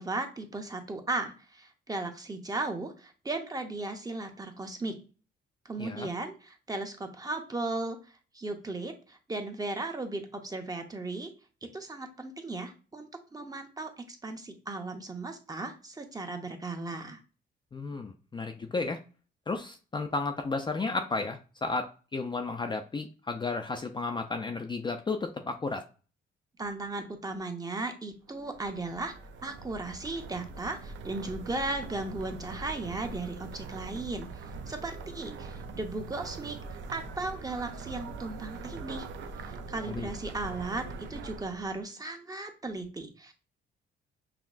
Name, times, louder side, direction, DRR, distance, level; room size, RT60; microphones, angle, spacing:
voice 1, 0.0-5.0 5.6-11.3 11.6-17.2 26.6-29.1 29.4-36.6 36.9-39.1 39.4-43.3, right 2 dB, 20° right, 5 dB, 0.7 m, -36 dB
voice 2, 5.8-6.1 17.7-19.0 19.5-25.8 39.9-40.1, left 3 dB, 25° left, 4 dB, 0.4 m, -33 dB
sound 1, 28.3-41.8, right 4 dB, 70° right, 0.5 m, -42 dB
5.8 x 2.1 x 2.5 m, 0.35 s
cardioid pair, 90°, 20 cm